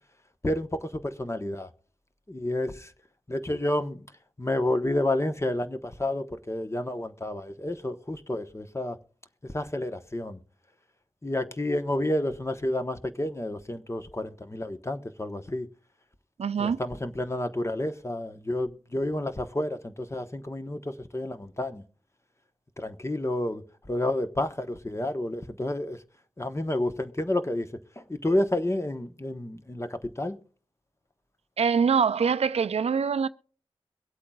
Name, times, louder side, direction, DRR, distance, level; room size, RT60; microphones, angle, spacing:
voice 1, 0.4-1.7 2.3-2.9 3.3-4.1 4.4-9.0 9.5-10.4 11.2-15.7 16.6-21.8 22.8-26.0 26.4-30.4, left 1 dB, 25° left, 1.1 m, -30 dB
voice 2, 16.4-16.8 31.6-33.3, right 6 dB, 75° right, 0.5 m, -24 dB
23.5 x 8.4 x 2.4 m
cardioid pair, 40°, 11 cm